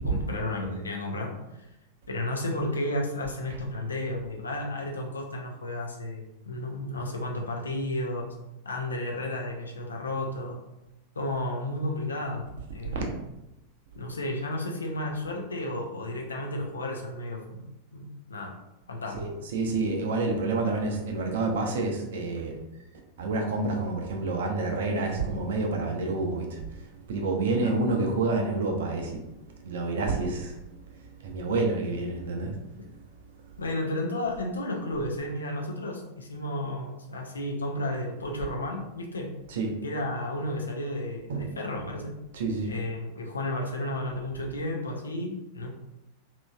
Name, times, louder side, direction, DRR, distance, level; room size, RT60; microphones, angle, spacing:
voice 1, 0.0-1.7 2.1-8.3 8.6-10.6 11.2-13.2 14.0-18.6 18.9-19.3 27.6-27.8 33.6-39.3 39.8-42.2 42.7-45.7, left 1 dB, 75° left, 1 dB, 0.5 m, -33 dB
voice 2, 19.1-22.6 23.2-29.3 29.6-30.6 31.0-32.6 39.5-39.7 41.3-41.5 42.3-42.7, right 3 dB, 60° right, 2 dB, 0.5 m, -28 dB
2.9 x 2.6 x 2.3 m, 0.94 s
figure-of-eight pair, 90°, 0 cm